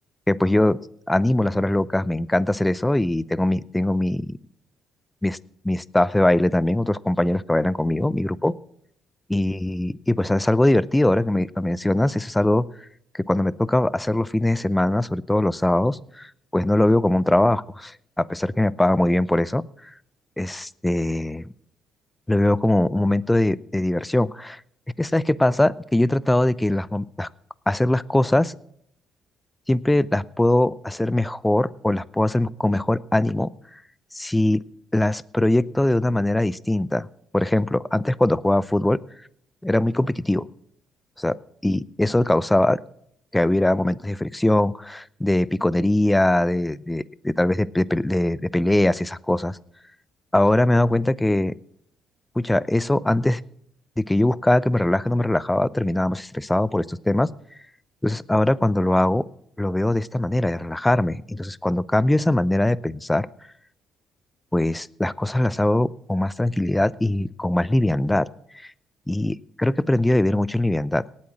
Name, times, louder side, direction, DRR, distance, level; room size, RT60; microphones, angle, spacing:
voice 1, 0.3-0.8 1.1-4.4 5.2-5.4 5.6-8.5 9.3-12.7 13.1-19.6 20.4-21.5 22.3-24.6 25.0-27.3 27.7-28.6 29.7-33.5 34.1-34.6 34.9-37.1 37.3-39.0 39.6-40.4 41.2-41.4 41.6-42.8 43.3-49.6 50.3-51.5 52.4-53.4 54.0-57.3 58.0-59.2 59.6-63.3 64.5-68.3 68.6-68.7 69.1-71.0, left 1 dB, 10° left, 20 dB, 0.6 m, -21 dB
18.0 x 8.7 x 6.1 m, 0.68 s
hypercardioid pair, 50°, 0 cm